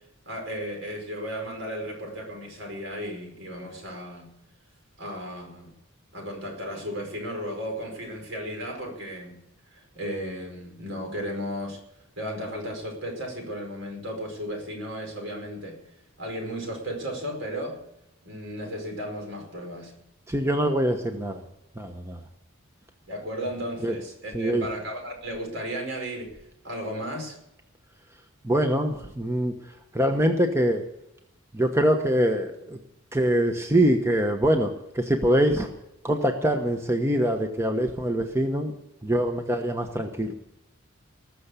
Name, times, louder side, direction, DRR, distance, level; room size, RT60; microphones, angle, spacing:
voice 1, 0.3-4.3 5.0-5.7 6.1-9.4 9.7-11.8 12.2-15.8 16.2-17.8 18.2-19.9 23.1-27.4, equal, 65° right, 2 dB, 5.1 m, -34 dB
voice 2, 20.3-21.4 21.8-22.2 23.8-23.9 24.3-24.7 28.4-29.5 29.9-30.8 31.5-32.8 33.1-35.7 36.0-38.7 39.0-40.3, right 1 dB, 15° right, 4 dB, 1.0 m, -24 dB
20.0 x 6.8 x 8.3 m, 0.83 s
head